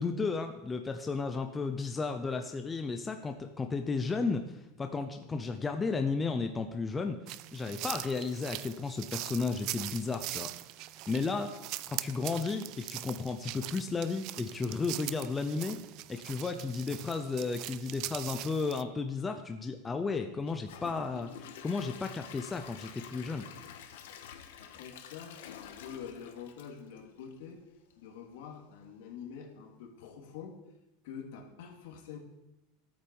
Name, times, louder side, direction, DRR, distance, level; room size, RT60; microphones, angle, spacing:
voice 1, 0.0-7.2 7.5-10.5 11.1-11.6 11.9-15.8 16.1-23.5, left 4 dB, 10° left, 6 dB, 0.6 m, -33 dB
sound 1, 7.3-18.8, right 17 dB, 40° right, 0.4 m, -42 dB
Gurgling / Toilet flush / Trickle dribble, 20.4-27.5 27.9-28.0 28.5-28.6, left 9 dB, 85° left, 1.5 m, -49 dB
voice 2, 24.6-27.6 28.0-30.6 31.0-32.2, left 7 dB, 65° left, 1 dB, 2.7 m, -46 dB
16.0 x 8.9 x 5.4 m, 0.97 s
supercardioid pair, 175°, 0 cm